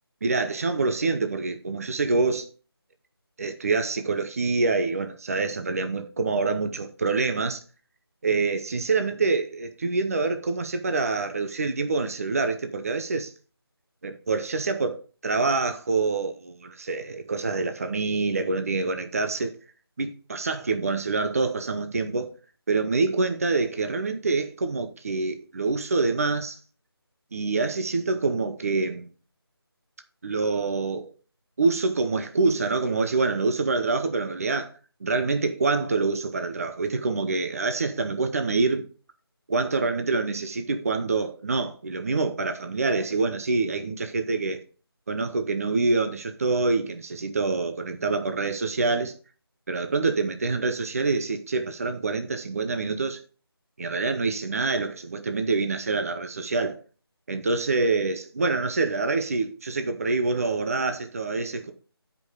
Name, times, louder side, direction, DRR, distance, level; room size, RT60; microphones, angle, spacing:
voice 1, 0.2-2.5 3.4-7.6 8.2-13.3 14.0-19.5 20.0-22.3 22.7-26.6 27.3-29.1 30.2-31.1 31.6-34.7 35.0-38.9 39.5-44.6 45.1-49.1 49.7-53.2 53.8-56.8 57.3-61.7, right 3 dB, 35° right, 0.9 m, -26 dB
9.1 x 5.4 x 5.0 m
figure-of-eight pair, 170°, 13 cm